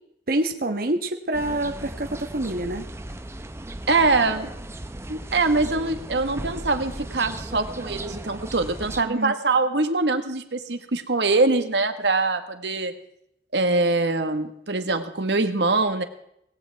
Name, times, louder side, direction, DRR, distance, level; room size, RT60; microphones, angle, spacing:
voice 1, 0.3-2.9 9.0-9.3, right 1 dB, 55° right, 5 dB, 1.2 m, -27 dB
sound 1, 1.3-9.0, right 1 dB, 15° right, 0.7 m, -36 dB
voice 2, 3.9-4.5 5.1-12.9 13.5-16.0, right 3 dB, 75° right, 8 dB, 1.5 m, -23 dB
19.0 x 17.0 x 3.5 m, 0.75 s
head